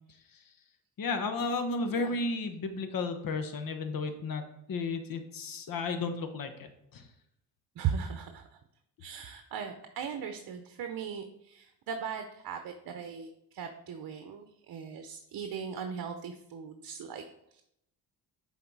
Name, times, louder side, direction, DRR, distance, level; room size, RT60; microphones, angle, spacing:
voice 1, 1.0-7.1, left 3 dB, 55° left, 7 dB, 1.1 m, -33 dB
voice 2, 7.8-8.4 9.0-17.2, right 7 dB, 60° right, 7 dB, 0.8 m, -38 dB
6.9 x 4.3 x 4.7 m, 0.78 s
cardioid pair, 85°, 41 cm